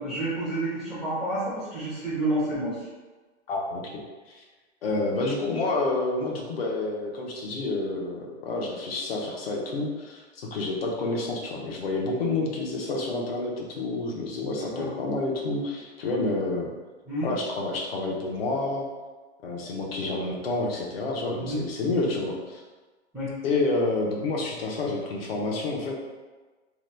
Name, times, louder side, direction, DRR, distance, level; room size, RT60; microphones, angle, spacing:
voice 1, 0.0-2.8 14.5-14.9 17.1-17.3 21.4-21.6 21.9-22.1 23.1-23.3, right 1 dB, ahead, -17 dB, 0.5 m, -30 dB
voice 2, 3.5-4.4 4.8-16.7 17.2-18.9 19.4-22.6 23.4-26.0, left 2 dB, 55° left, -1 dB, 0.6 m, -29 dB
2.8 x 2.1 x 3.2 m, 1.3 s
hypercardioid pair, 160°, 37 cm